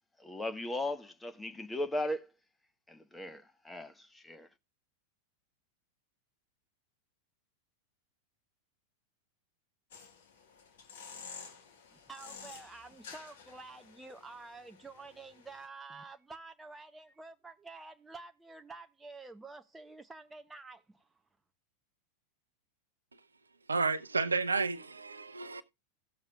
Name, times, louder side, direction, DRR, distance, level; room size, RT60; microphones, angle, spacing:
voice 1, 0.2-2.3 2.9-4.5, left 1 dB, 10° left, 1.1 m, -37 dB
sound 1, 9.9-15.7, left 6 dB, 60° left, 1.9 m, -51 dB
voice 2, 11.9-21.1, right 3 dB, 10° right, 0.6 m, -49 dB
voice 3, 23.7-25.6, right 4 dB, 75° right, 0.7 m, -31 dB
17.0 x 7.2 x 2.3 m
figure-of-eight pair, 90°, 0 cm